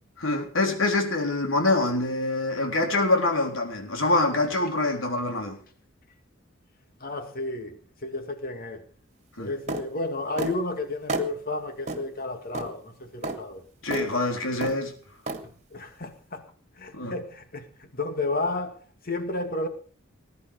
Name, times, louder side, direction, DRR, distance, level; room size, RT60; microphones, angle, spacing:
voice 1, 0.2-5.6 9.4-9.5 13.8-14.9 16.9-17.1, left 2 dB, 80° left, 3.8 m, -25 dB
voice 2, 7.0-8.8 9.4-13.6 15.7-16.4 16.8-19.7, left 2 dB, 45° left, 2.3 m, -32 dB
sound 1, 9.7-9.9 10.4-10.6 11.1-11.3 11.9-12.0 12.5-12.7 13.2-13.4 13.9-14.1 14.6-14.8 15.3-15.4, right 2 dB, 35° right, 2.1 m, -30 dB
19.5 x 10.5 x 5.2 m
head